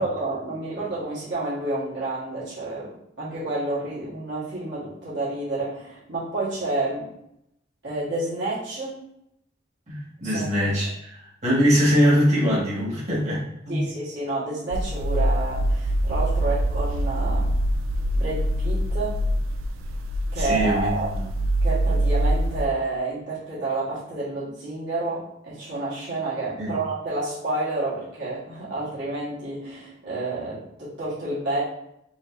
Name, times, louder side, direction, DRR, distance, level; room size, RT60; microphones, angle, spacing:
voice 1, 0.0-2.9 3.2-7.1 7.8-9.0 10.2-10.5 13.7-17.6 18.1-19.2 20.3-21.1 21.6-31.6, right 2 dB, 60° right, -9 dB, 1.5 m, -29 dB
voice 2, 9.9-11.1 11.4-13.4 13.6-13.8 20.3-21.2 26.6-26.7, equal, 35° right, -8 dB, 1.5 m, -22 dB
sound 1, 14.7-22.7, right 1 dB, 80° right, 0.4 m, -24 dB
4.9 x 2.7 x 2.6 m, 0.77 s
head